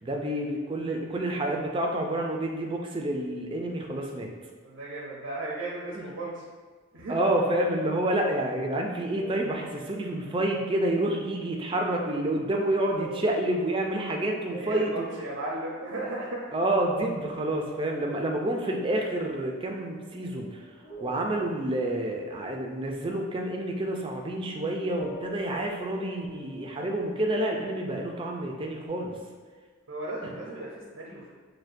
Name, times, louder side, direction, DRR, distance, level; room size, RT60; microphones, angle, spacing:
voice 1, 0.0-4.3 5.9-6.0 7.1-15.1 16.5-20.7 21.0-29.1 30.2-30.3, right 1 dB, 25° right, 1 dB, 0.4 m, -29 dB
voice 2, 4.6-6.4 6.9-7.4 14.5-16.5 29.9-31.3, right 2 dB, 90° right, -5 dB, 0.7 m, -35 dB
sound 1, 9.1-16.5 16.8-24.5 24.8-28.9, right 4 dB, 50° left, 0.9 m, -47 dB
6.3 x 2.2 x 2.6 m, 1.5 s
head